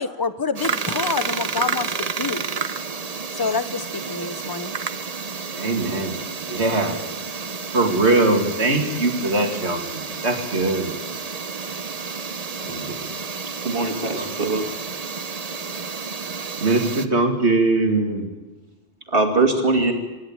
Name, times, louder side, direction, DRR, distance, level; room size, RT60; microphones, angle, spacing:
voice 1, 0.0-2.5 3.3-4.8, left 4 dB, 20° left, 12 dB, 0.9 m, -27 dB
sound 1, 0.6-17.1, right 5 dB, 35° right, 0.9 m, -30 dB
voice 2, 5.6-6.2 6.5-7.0 7.7-11.0 12.6-13.1 14.1-14.3 16.6-18.3, right 2 dB, 80° right, 4 dB, 2.8 m, -21 dB
voice 3, 13.6-14.7 19.1-19.9, right 3 dB, 55° right, 4 dB, 2.7 m, -21 dB
27.0 x 11.0 x 8.8 m, 1.2 s
omnidirectional pair, 1.1 m